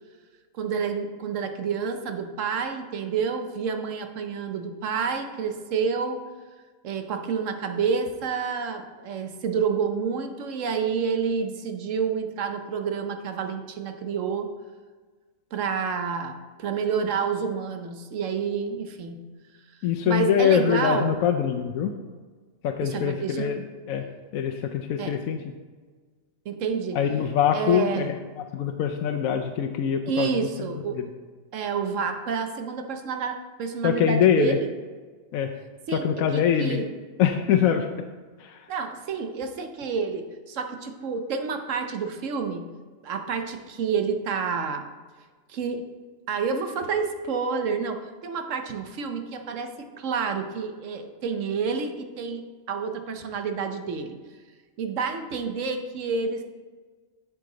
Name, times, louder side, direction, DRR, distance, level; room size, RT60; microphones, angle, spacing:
voice 1, 0.5-6.2 6.8-14.5 15.5-19.2 20.1-21.2 22.8-23.5 25.0-25.2 26.4-27.0 27.5-28.1 30.1-31.1 31.5-34.7 35.9-36.1 36.3-36.9 38.7-42.7 43.0-44.8 45.5-45.8 46.3-54.2 54.8-56.4, right 6 dB, 70° right, 6 dB, 1.1 m, -29 dB
voice 2, 19.8-21.9 22.6-24.0 24.3-25.4 26.9-28.2 28.5-30.5 30.9-31.0 33.8-34.6 35.3-35.5 35.9-36.8 37.2-37.9 38.4-38.6, left 8 dB, 90° left, 4 dB, 1.0 m, -23 dB
8.1 x 7.5 x 3.9 m, 1.4 s
omnidirectional pair, 1.4 m